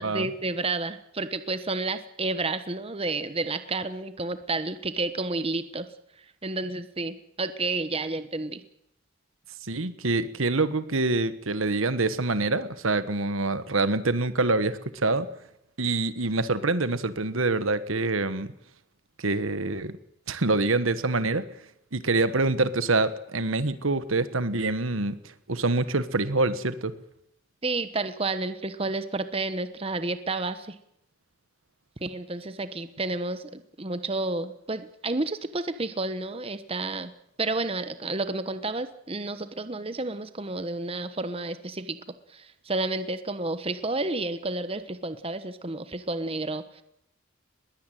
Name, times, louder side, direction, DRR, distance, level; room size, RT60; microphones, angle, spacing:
voice 1, 0.0-5.9 6.4-8.6 27.6-30.8 32.0-37.1 37.4-42.0 42.3-46.8, right 3 dB, 30° right, 11 dB, 1.1 m, -31 dB
voice 2, 9.6-15.3 15.8-18.5 19.2-19.9 20.3-21.4 21.9-25.2 25.5-26.9, right 3 dB, 85° right, 13 dB, 1.4 m, -25 dB
21.0 x 16.5 x 9.2 m, 0.78 s
head